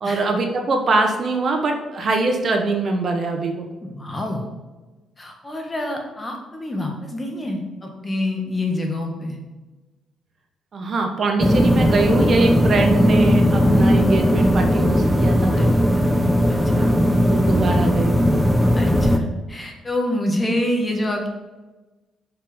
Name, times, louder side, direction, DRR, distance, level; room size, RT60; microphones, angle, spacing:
voice 1, 0.0-3.7 10.7-15.7 16.7-18.4, right 3 dB, 50° right, 3 dB, 1.2 m, -23 dB
voice 2, 3.8-4.5 5.2-9.4 15.5-15.7 15.9-16.1 16.5-16.9 18.7-21.3, left 1 dB, 20° left, 2 dB, 1.8 m, -27 dB
sound 1, 11.4-19.2, equal, ahead, 0.9 m, -17 dB
6.5 x 5.9 x 5.2 m, 1.2 s
cardioid pair, 90°, 0 cm